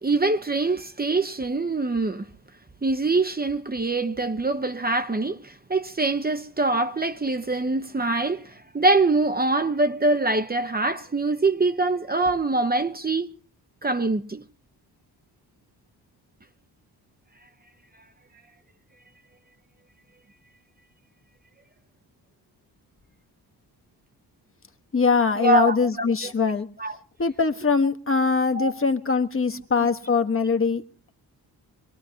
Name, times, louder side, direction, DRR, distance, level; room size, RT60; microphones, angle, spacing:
voice 1, 0.0-2.3 2.8-13.3 13.8-14.4 25.4-26.3 26.8-27.0 28.5-28.7, right 2 dB, 25° right, 1.0 m, -24 dB
voice 2, 24.9-26.7 27.2-30.8, left 5 dB, 30° left, 1.3 m, -22 dB
25.5 x 18.5 x 2.8 m
cardioid pair, 75°, 40 cm